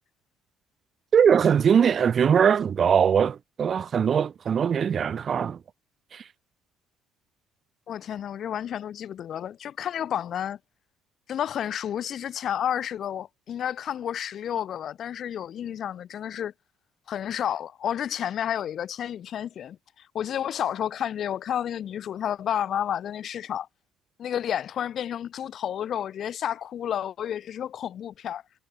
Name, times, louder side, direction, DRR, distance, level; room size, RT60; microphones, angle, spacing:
voice 1, 1.1-5.6 6.1-6.2, right 7 dB, 45° right, 0.3 m, -21 dB
voice 2, 7.9-10.6 11.3-16.5 17.1-23.7 24.2-28.4, left 9 dB, 55° left, 0.4 m, -31 dB
supercardioid pair, 85°, 0 cm